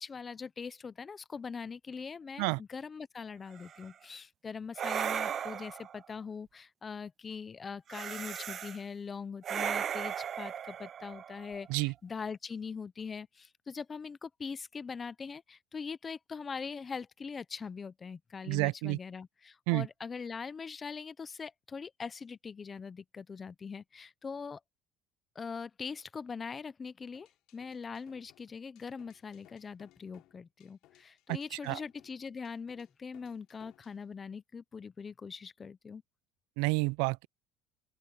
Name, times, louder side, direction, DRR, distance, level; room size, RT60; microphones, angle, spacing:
voice 1, 0.0-24.6 25.4-27.3 27.5-36.0, left 5 dB, 20° left, 0.5 m, -42 dB
sound 1, 3.6-3.9 4.8-6.0 7.9-8.8 9.4-11.7, right 8 dB, 30° right, 0.6 m, -36 dB
voice 2, 18.5-19.0 19.7-19.9 31.3-31.4 31.6-31.8 36.6-37.3, right 27 dB, 80° right, 0.3 m, -29 dB
sound 2, 27.1-34.0, left 17 dB, 55° left, 4.2 m, -64 dB
open air
cardioid pair, 175°, 0 cm